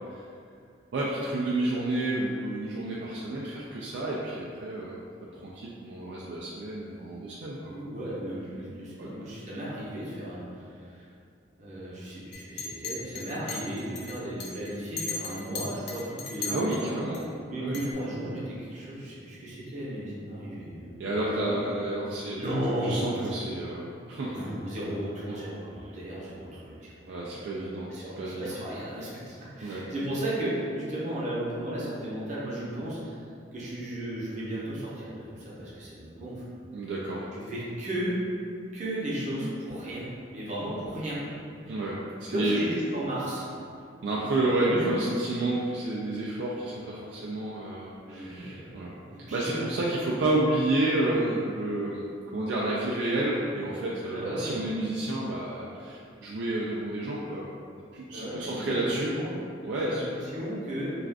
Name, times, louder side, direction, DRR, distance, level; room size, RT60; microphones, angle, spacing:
voice 1, 0.9-5.0 5.4-7.7 8.0-8.1 8.5-8.7 9.0-9.1 16.5-17.3 17.6-17.8 21.0-22.4 22.8-24.4 25.3-25.5 27.1-28.6 29.6-29.9 36.7-37.3 41.7-42.6 44.0-48.9 49.3-57.5 57.9-59.1 59.6-60.0, right 2 dB, 65° right, -5 dB, 0.3 m, -30 dB
voice 2, 7.7-11.1 11.6-16.6 17.4-21.7 22.4-23.0 24.2-27.3 27.9-33.1 33.5-36.4 37.3-38.1 38.7-41.4 42.2-43.4 44.2-45.0 48.1-49.6 54.1-54.5 58.1-59.3 59.8-60.9, right 1 dB, 40° right, -7 dB, 0.7 m, -35 dB
Chink clink, 12.3-17.2 17.7-17.9, left 4 dB, 65° left, 0.5 m, -37 dB
2.4 x 2.3 x 3.4 m, 2.4 s
head